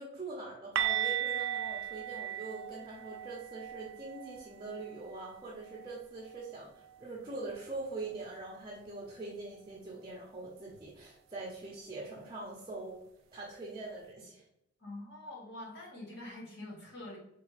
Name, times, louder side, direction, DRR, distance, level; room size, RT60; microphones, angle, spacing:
voice 1, 0.0-13.0 13.3-14.4, right 3 dB, 25° right, -6 dB, 0.8 m, -43 dB
sound 1, 0.8-6.5 6.8-7.0 7.4-7.5 10.8-10.9, right 10 dB, 70° right, 0.3 m, -37 dB
voice 2, 14.8-17.2, left 1 dB, 55° left, -4 dB, 1.6 m, -45 dB
4.1 x 3.3 x 3.1 m, 0.83 s
head